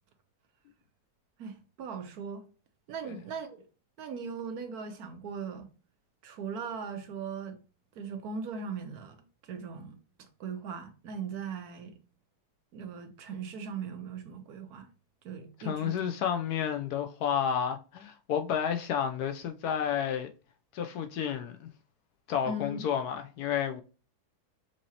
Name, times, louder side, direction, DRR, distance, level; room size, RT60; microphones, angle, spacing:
voice 1, 1.4-2.4 2.9-3.6 4.0-5.7 6.2-7.6 8.0-9.2 9.4-11.9 12.7-14.9 15.2-16.0 22.5-22.8, right 5 dB, 70° right, 1.2 m, -39 dB
voice 2, 15.6-20.3 20.7-21.7 22.3-23.8, left 8 dB, 75° left, 1.0 m, -31 dB
6.0 x 2.7 x 2.8 m
omnidirectional pair, 1.8 m